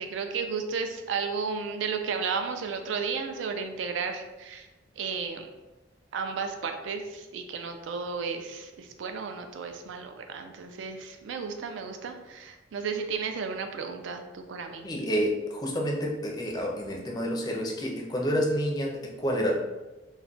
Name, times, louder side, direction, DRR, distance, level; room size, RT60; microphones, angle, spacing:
voice 1, 0.0-4.7 5.0-5.5 6.1-14.9, right 5 dB, 75° right, 5 dB, 0.4 m, -33 dB
voice 2, 14.8-19.6, equal, 20° left, 0 dB, 0.4 m, -29 dB
2.3 x 2.1 x 3.8 m, 1.1 s
head